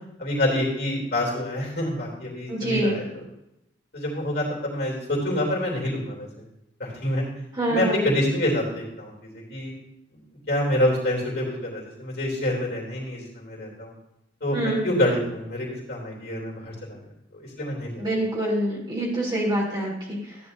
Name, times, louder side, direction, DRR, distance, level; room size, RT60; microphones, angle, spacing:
voice 1, 0.2-3.0 3.9-6.3 6.8-7.2 7.7-9.7 10.5-13.9 14.4-17.0 17.3-18.0, left 1 dB, 55° left, -3 dB, 3.4 m, -27 dB
voice 2, 2.5-3.0 7.6-8.1 14.5-14.8 18.0-20.4, right 1 dB, 25° right, -5 dB, 3.7 m, -26 dB
14.0 x 10.0 x 2.8 m, 0.85 s
head